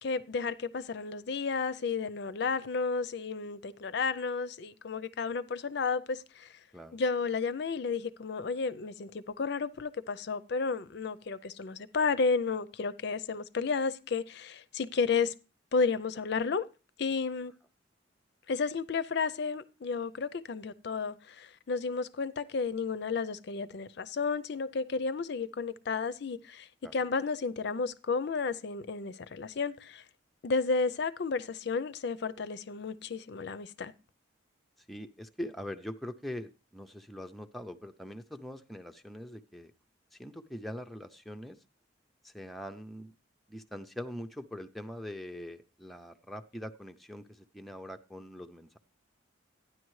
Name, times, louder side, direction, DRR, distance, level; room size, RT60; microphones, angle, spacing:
voice 1, 0.0-6.5 6.9-15.3 15.7-16.6 17.0-17.5 18.5-30.0 30.4-33.9, left 4 dB, 55° left, 0.5 m, -32 dB
voice 2, 34.8-39.7 40.1-41.6 42.2-43.1 43.5-48.8, equal, ahead, 0.4 m, -43 dB
12.5 x 9.8 x 3.1 m
head